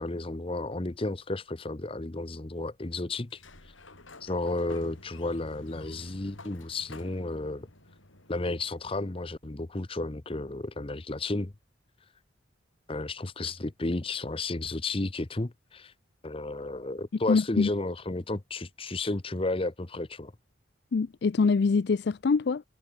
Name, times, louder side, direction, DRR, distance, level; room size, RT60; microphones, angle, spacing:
voice 1, 0.0-3.4 4.2-7.7 8.3-11.5 12.9-15.9 16.2-20.3, left 2 dB, 30° left, 0.8 m, -33 dB
Sliding door, 3.2-8.9, left 2 dB, 80° left, 5.9 m, -50 dB
voice 2, 17.3-17.7 20.9-22.6, left 4 dB, 55° left, 0.4 m, -24 dB
head